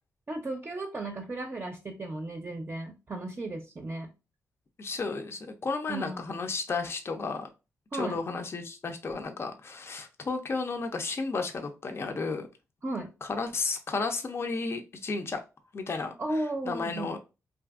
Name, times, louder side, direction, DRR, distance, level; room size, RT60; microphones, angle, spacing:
voice 1, 0.3-4.1 5.9-6.4 7.9-8.2 12.8-13.1 16.2-17.1, right 2 dB, 35° right, 0.5 m, -35 dB
voice 2, 4.8-7.5 7.9-12.5 13.2-15.4 15.7-17.2, left 4 dB, 45° left, 0.4 m, -33 dB
2.6 x 2.4 x 2.4 m
cardioid pair, 55°, 6 cm